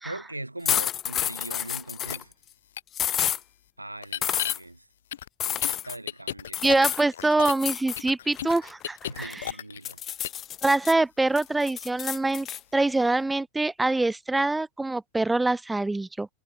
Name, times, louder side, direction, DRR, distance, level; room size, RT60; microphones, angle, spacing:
voice 1, 0.0-2.3 3.8-4.9 5.5-6.8 9.1-10.0, right 2 dB, 85° right, 3.2 m, -40 dB
sound 1, 0.7-2.2 2.9-3.4 4.2-4.6 5.4-6.0 6.5-7.1 7.5-8.0 8.4-9.5 9.9-10.9 11.4-12.6, left 10 dB, 30° left, 0.7 m, -29 dB
sound 2, 2.0-2.2 2.8-2.9 4.0-4.5 5.1-7.7 8.0-9.9 10.2-10.4, left 11 dB, 60° left, 1.5 m, -34 dB
voice 2, 6.6-9.5 10.6-12.5 12.7-16.3, right 2 dB, 5° right, 1.6 m, -24 dB
figure-of-eight pair, 90°, 0 cm